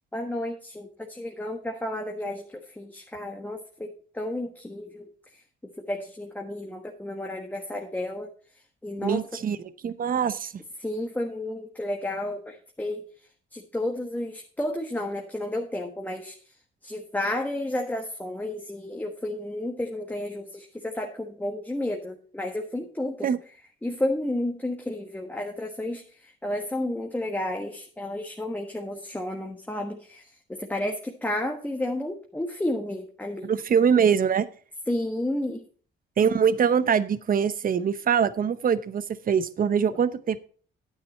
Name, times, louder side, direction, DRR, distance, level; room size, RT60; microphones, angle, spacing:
voice 1, 0.1-5.1 5.8-8.3 8.8-9.2 10.8-13.0 13.5-16.3 16.8-23.3 23.8-33.5 34.9-35.6, left 1 dB, 10° left, 2 dB, 1.4 m, -32 dB
voice 2, 9.0-9.6 9.8-10.5 23.2-23.4 33.4-34.5 36.2-40.4, right 7 dB, 45° right, 14 dB, 0.8 m, -23 dB
9.5 x 9.2 x 4.3 m, 0.43 s
cardioid pair, 90°, 20 cm